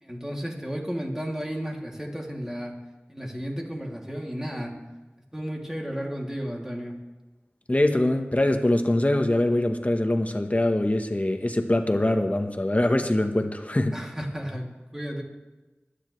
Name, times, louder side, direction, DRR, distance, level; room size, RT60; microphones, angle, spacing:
voice 1, 0.0-2.8 3.1-4.8 5.3-7.0 13.9-15.2, equal, 10° right, -1 dB, 2.8 m, -33 dB
voice 2, 7.7-13.9, left 1 dB, 35° left, 6 dB, 1.3 m, -23 dB
24.5 x 9.9 x 3.3 m, 1.2 s
wide cardioid pair, 45°, 4 cm